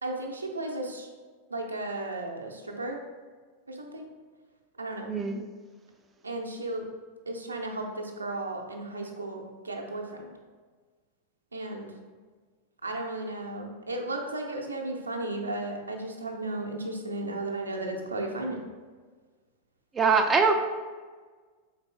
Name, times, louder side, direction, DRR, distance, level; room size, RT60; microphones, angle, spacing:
voice 1, 0.0-1.1 1.5-3.0 3.7-4.1 4.8-5.1 6.2-6.8 7.3-10.3 11.5-11.9 12.8-18.6, right 2 dB, 80° right, 1 dB, 0.5 m, -34 dB
voice 2, 5.1-5.5 19.9-20.5, right 5 dB, 20° right, 5 dB, 0.3 m, -23 dB
3.9 x 3.6 x 3.3 m, 1.5 s
figure-of-eight pair, 90°, 0 cm